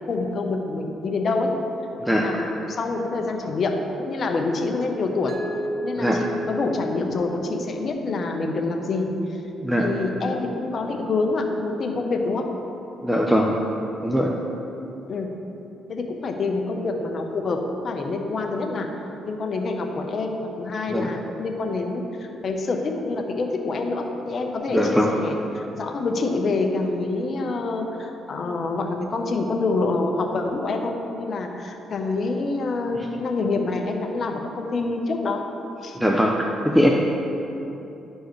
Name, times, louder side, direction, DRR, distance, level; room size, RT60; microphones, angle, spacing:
voice 1, 0.1-1.5 2.1-5.4 5.8-9.4 9.8-12.5 15.1-15.3 15.9-18.9 19.2-35.4 35.8-36.0, left 3 dB, 50° left, 3 dB, 0.8 m, -26 dB
Mallet percussion, 5.3-8.2, equal, 30° right, 0.9 m, -32 dB
voice 2, 13.0-13.6 14.0-14.3 20.9-21.1 24.7-25.1 36.0-36.9, equal, 5° right, 0 dB, 0.5 m, -20 dB
11.5 x 4.6 x 3.2 m, 3.0 s
cardioid pair, 90°, 0 cm